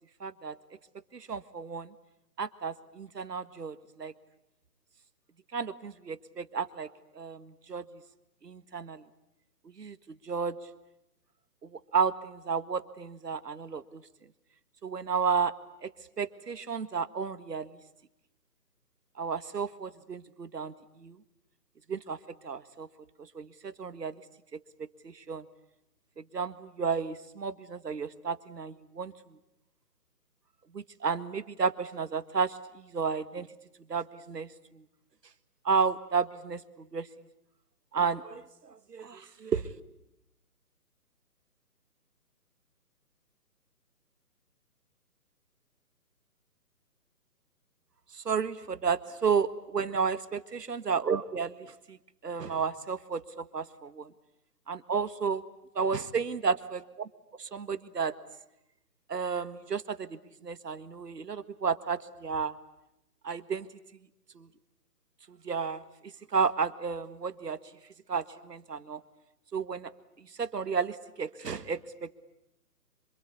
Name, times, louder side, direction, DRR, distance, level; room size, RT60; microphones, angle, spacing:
voice 1, 0.2-0.6 1.1-1.9 2.4-4.1 5.5-6.9 7.1-8.0 8.4-9.0 9.8-10.6 11.6-14.0 14.8-15.5 15.8-15.9 16.2-17.7 19.2-21.2 21.9-22.2 22.4-22.9 23.3-24.2 25.0-25.5 26.2-29.4 30.7-33.5 33.9-34.8 35.6-37.1 37.9-39.7 48.1-50.2 50.7-52.0 52.2-54.1 54.7-55.4 55.8-58.2 59.1-62.6 63.2-63.7 64.4-64.5 65.3-65.8 66.3-67.6 68.1-69.0 69.5-69.9 70.2-72.2, right 5 dB, 80° right, 12 dB, 1.8 m, -32 dB
27.0 x 26.0 x 8.5 m, 0.87 s
hypercardioid pair, 155°, 48 cm